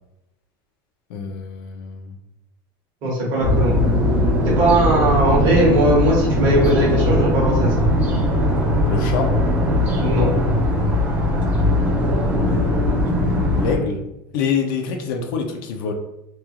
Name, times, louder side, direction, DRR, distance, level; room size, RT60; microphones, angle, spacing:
voice 1, 1.1-2.2 8.9-9.4 12.4-14.0 14.3-15.9, left 6 dB, 65° left, 5 dB, 0.4 m, -26 dB
voice 2, 3.0-3.8 4.4-7.9 10.0-10.3, right 1 dB, 35° right, -4 dB, 1.1 m, -19 dB
sound 1, 3.4-13.8, left 1 dB, 10° right, 0.4 m, -19 dB
3.0 x 2.3 x 2.2 m, 0.87 s
cardioid pair, 180°, 12 cm